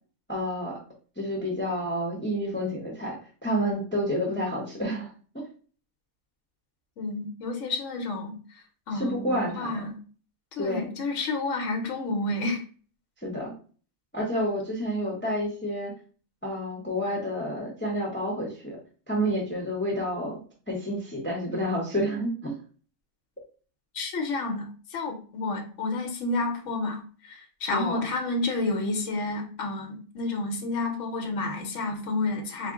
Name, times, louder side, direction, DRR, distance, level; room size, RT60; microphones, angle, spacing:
voice 1, 0.3-0.8 1.2-5.4 8.9-9.8 10.6-10.9 13.2-13.5 14.1-15.9 16.4-18.8 19.1-20.4 20.7-22.6 27.7-28.0, equal, 10° left, -2 dB, 0.7 m, -29 dB
voice 2, 7.0-8.3 8.9-10.0 10.5-12.6 23.9-32.7, left 2 dB, 65° left, 3 dB, 1.1 m, -30 dB
4.3 x 2.0 x 3.6 m, 0.40 s
omnidirectional pair, 1.4 m